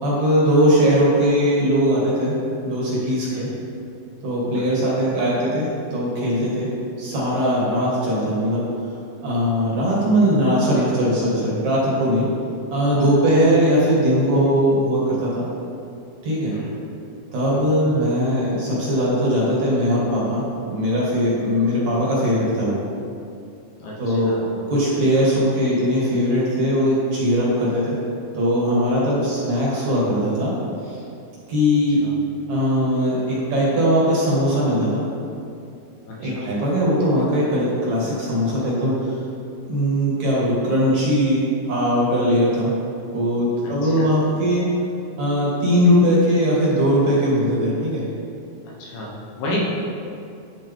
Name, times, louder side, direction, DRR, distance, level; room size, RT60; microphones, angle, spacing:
voice 1, 0.0-2.4 2.6-3.5 4.2-6.7 7.0-8.6 9.2-12.3 12.7-15.5 16.2-16.5 17.3-22.8 24.0-24.3 24.7-28.0 28.3-30.5 30.8-31.0 31.5-32.0 32.5-35.0 36.2-39.2 39.7-41.4 41.7-42.7 43.1-44.7 45.2-48.0, equal, 55° right, -7 dB, 3.0 m, -20 dB
voice 2, 16.5-16.8 17.5-17.7 23.8-24.6 32.0-32.1 36.1-36.6 43.6-44.2 48.8-49.6, left 2 dB, 70° left, -4 dB, 2.4 m, -33 dB
11.5 x 5.1 x 3.6 m, 2.5 s
omnidirectional pair, 4.1 m